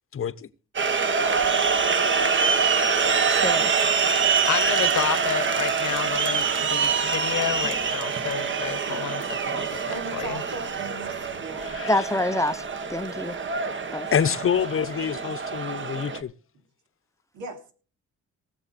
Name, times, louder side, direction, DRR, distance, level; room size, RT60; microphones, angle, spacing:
voice 1, 0.1-0.5 11.6-12.3 14.1-16.3, left 8 dB, 45° left, 1.0 m, -27 dB
sound 1, 0.7-16.2, right 5 dB, 40° right, 1.3 m, -25 dB
sound 2, 1.2-11.4, right 3 dB, 60° right, 3.7 m, -48 dB
voice 2, 3.3-3.7 7.7-7.8 11.9-12.6 12.9-13.4 13.9-14.1, left 1 dB, 10° left, 0.7 m, -26 dB
voice 3, 4.5-9.8 10.1-10.4, left 11 dB, 70° left, 1.2 m, -30 dB
voice 4, 9.9-12.0 14.2-14.4 17.3-17.6, right 4 dB, 80° right, 3.3 m, -37 dB
18.5 x 7.1 x 4.2 m
cardioid pair, 90°, 30 cm